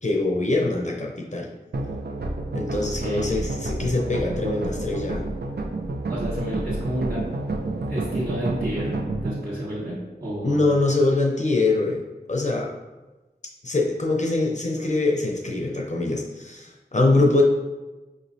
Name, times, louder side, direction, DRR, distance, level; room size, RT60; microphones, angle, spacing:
voice 1, 0.0-1.5 2.5-5.3 10.4-12.0 12.3-12.7 13.6-17.4, left 2 dB, 45° left, 0 dB, 0.6 m, -23 dB
sound 1, 1.7-9.4, right 2 dB, 80° right, 0.5 m, -29 dB
voice 2, 2.7-3.4 6.1-7.2 7.9-8.9 9.2-9.9 10.2-10.8, equal, 60° right, -13 dB, 1.4 m, -30 dB
5.0 x 3.0 x 2.6 m, 1.1 s
wide cardioid pair, 50°, 17 cm